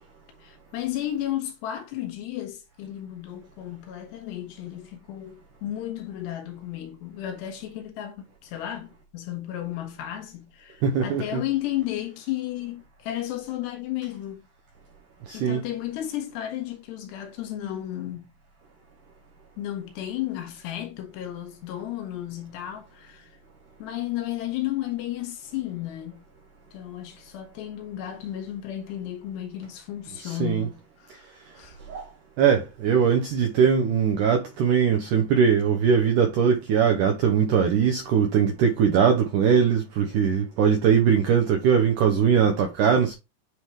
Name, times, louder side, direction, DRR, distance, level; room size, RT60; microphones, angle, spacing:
voice 1, 0.4-14.4 15.3-18.3 19.6-23.3 23.8-26.2 26.7-31.3 31.6-31.8, left 13 dB, 85° left, 3.4 m, -33 dB
voice 2, 10.8-11.4 15.3-15.6 30.2-30.7 31.9-32.1 32.4-43.2, right 7 dB, 80° right, 1.8 m, -21 dB
9.5 x 3.4 x 3.0 m
omnidirectional pair, 4.8 m